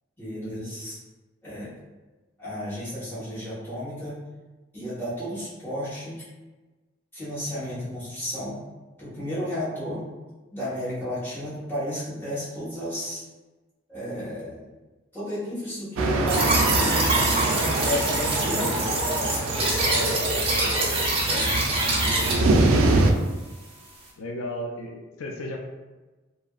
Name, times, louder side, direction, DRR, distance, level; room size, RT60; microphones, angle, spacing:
voice 1, 0.2-1.0 1.4-1.7 2.4-4.2 4.7-6.2 7.1-8.6 9.0-10.0 10.5-13.2 13.9-14.7 15.1-17.2 17.7-18.8 19.5-20.1 20.6-20.7 21.2-22.5, equal, 10° left, -11 dB, 1.1 m, -33 dB
sound 1, 16.0-23.1, right 2 dB, 85° right, 0.3 m, -25 dB
sound 2, 16.3-22.3, right 2 dB, 30° right, 0.6 m, -24 dB
voice 2, 18.4-18.8 19.9-20.5 24.2-25.6, left 1 dB, 85° left, 1 dB, 0.4 m, -35 dB
2.7 x 2.5 x 2.3 m, 1.2 s
head